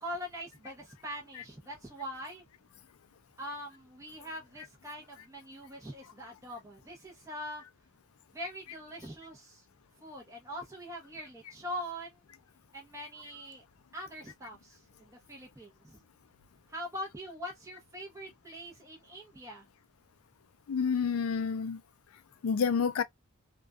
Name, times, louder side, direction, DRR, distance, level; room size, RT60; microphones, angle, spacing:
voice 1, 0.0-2.4 3.4-7.6 8.3-9.6 10.0-12.2 12.7-13.6 13.9-16.0 16.7-19.7, equal, 15° right, 0.7 m, -43 dB
voice 2, 20.7-21.8 22.4-23.0, left 6 dB, 85° left, 0.4 m, -29 dB
2.5 x 2.3 x 2.2 m
head